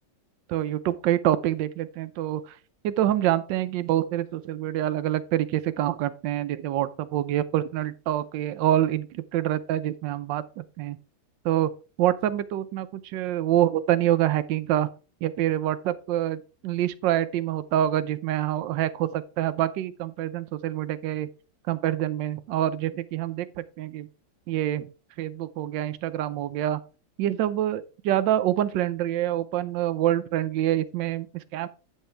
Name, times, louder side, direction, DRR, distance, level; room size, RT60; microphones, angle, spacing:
voice 1, 0.5-2.4 2.8-11.0 11.4-11.7 12.0-14.9 15.2-21.3 21.7-24.1 24.5-24.9 25.2-26.8 27.2-31.7, right 12 dB, 80° right, 1.3 m, -26 dB
9.6 x 7.4 x 3.3 m
omnidirectional pair, 2.0 m